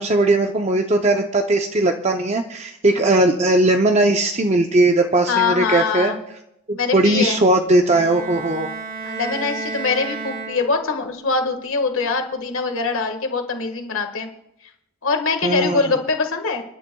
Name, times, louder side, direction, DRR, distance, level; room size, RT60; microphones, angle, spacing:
voice 1, 0.0-6.1 6.7-8.7 15.4-15.8, right 2 dB, 30° right, 4 dB, 0.6 m, -18 dB
voice 2, 5.3-6.2 6.7-7.4 9.0-14.3 15.0-16.6, left 4 dB, 65° left, 6 dB, 1.6 m, -23 dB
Bowed string instrument, 7.9-11.1, right 4 dB, 65° right, 5.9 m, -32 dB
30.0 x 11.0 x 2.3 m, 0.83 s
head